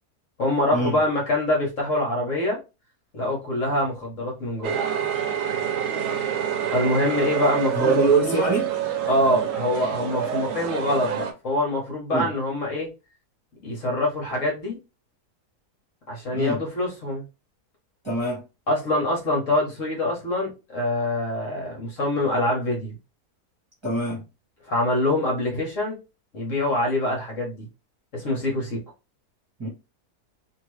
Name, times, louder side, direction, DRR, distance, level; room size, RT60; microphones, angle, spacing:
voice 1, 0.4-2.6 3.1-4.8 6.7-8.4 9.1-12.9 13.6-14.8 16.1-17.2 18.7-22.9 24.7-26.0 26.3-27.7 28.1-28.8, left 1 dB, 55° left, 1.4 m, -25 dB
sound 1, 4.6-11.3, right 9 dB, 65° right, 0.9 m, -27 dB
voice 2, 7.7-8.7 12.1-12.3 16.3-16.6 18.0-18.4 23.8-24.2 29.6-29.7, right 3 dB, 20° right, 1.2 m, -23 dB
2.9 x 2.7 x 3.1 m
omnidirectional pair, 1.6 m